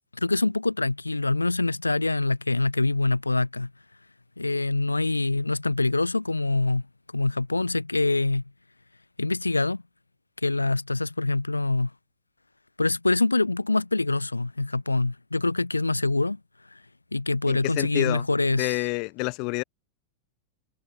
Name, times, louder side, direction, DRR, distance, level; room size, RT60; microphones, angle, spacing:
voice 1, 0.1-3.7 4.4-6.8 7.1-8.4 9.2-9.8 10.4-11.9 12.8-16.4 16.7-16.8 17.1-18.8, left 2 dB, 80° left, 0.6 m, -25 dB
voice 2, 17.5-18.2 18.6-19.6, left 30 dB, 45° left, 0.6 m, -28 dB
figure-of-eight pair, 90°, 0 cm